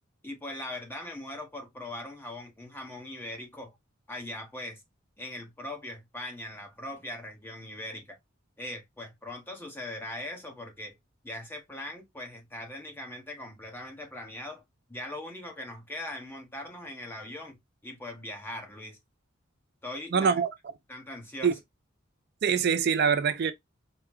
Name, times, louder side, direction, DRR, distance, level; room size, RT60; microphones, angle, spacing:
voice 1, 0.2-3.8 4.1-4.8 5.2-8.2 8.6-11.0 11.2-14.6 14.9-19.0 19.8-20.3 20.9-21.5, left 1 dB, 10° left, 1.0 m, -40 dB
voice 2, 20.1-20.5 21.4-21.5 22.4-23.5, right 6 dB, 50° right, 0.4 m, -24 dB
4.5 x 2.1 x 3.5 m
head